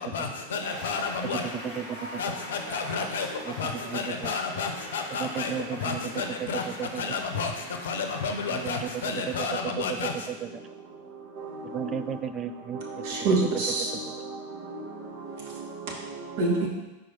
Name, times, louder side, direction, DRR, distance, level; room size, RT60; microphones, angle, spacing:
voice 1, 0.1-1.4 2.2-3.3 3.6-5.5 5.8-6.6 7.0-7.5 7.8-10.1, left 5 dB, 60° left, 5 dB, 0.7 m, -31 dB
sound 1, 0.6-9.3, equal, 70° right, 2.1 m, -42 dB
voice 2, 1.2-2.3 3.4-4.3 5.1-7.0 8.5-10.6 11.6-13.0, right 8 dB, 25° right, 10 dB, 0.3 m, -35 dB
voice 3, 11.4-12.2 12.7-16.7, right 3 dB, 50° right, -1 dB, 1.3 m, -30 dB
5.0 x 4.5 x 4.3 m, 1.0 s
figure-of-eight pair, 90°, 0 cm